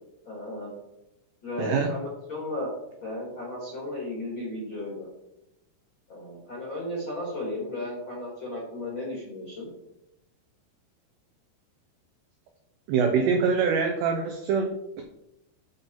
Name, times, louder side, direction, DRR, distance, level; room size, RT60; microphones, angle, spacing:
voice 1, 0.2-0.7 1.4-2.7 3.0-5.1 6.1-9.7, left 1 dB, 55° left, -4 dB, 1.4 m, -34 dB
voice 2, 1.6-1.9 12.9-14.7, right 5 dB, 85° right, 3 dB, 2.4 m, -24 dB
10.0 x 5.7 x 3.9 m, 0.87 s
omnidirectional pair, 6.0 m